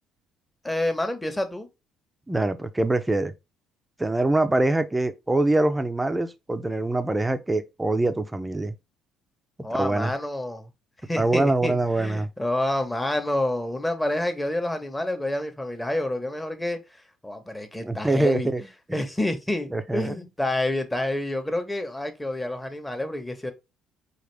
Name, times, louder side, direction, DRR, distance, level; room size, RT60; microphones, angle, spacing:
voice 1, 0.6-1.7 9.6-10.7 11.0-18.5 18.9-23.5, left 1 dB, 10° left, 1.1 m, -28 dB
voice 2, 2.3-3.3 4.0-8.7 9.8-10.1 11.1-12.3 17.8-18.7 19.7-20.1, right 2 dB, 10° right, 0.6 m, -24 dB
4.9 x 2.5 x 3.3 m
cardioid pair, 95°, 0 cm